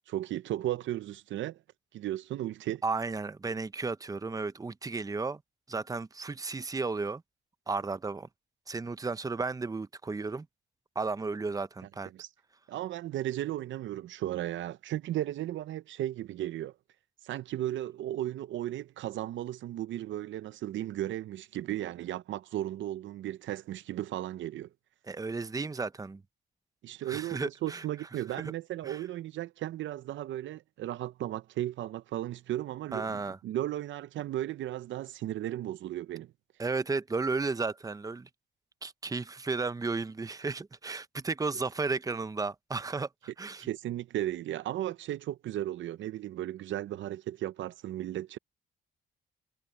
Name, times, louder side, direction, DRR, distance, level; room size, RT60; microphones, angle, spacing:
voice 1, 0.1-1.6 1.9-2.8 12.1-12.3 12.7-16.7 17.2-24.7 26.8-36.3 43.6-48.4, right 13 dB, 70° right, 0.7 m, -35 dB
voice 2, 2.8-5.4 5.7-7.2 7.7-8.3 8.7-10.5 10.9-12.1 25.1-26.2 27.1-27.8 28.8-29.0 32.9-33.4 36.6-38.3 38.8-43.7, right 3 dB, 20° right, 0.8 m, -33 dB
cardioid pair, 90°, 20 cm